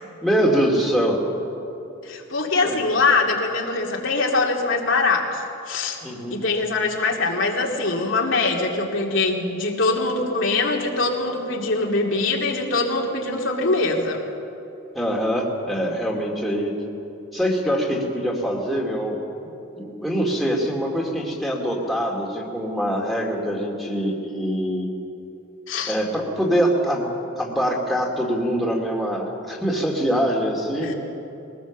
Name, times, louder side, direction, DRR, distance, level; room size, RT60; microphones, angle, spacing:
voice 1, 0.2-1.2 2.6-2.8 6.0-6.4 14.9-16.7 17.3-19.2 19.8-24.9 25.9-27.1 27.4-30.9, equal, ahead, -2 dB, 2.4 m, -24 dB
voice 2, 2.0-6.0 6.3-14.2 25.7-26.0 30.8-30.9, left 3 dB, 65° left, 0 dB, 2.5 m, -23 dB
22.5 x 19.0 x 7.3 m, 2.9 s
head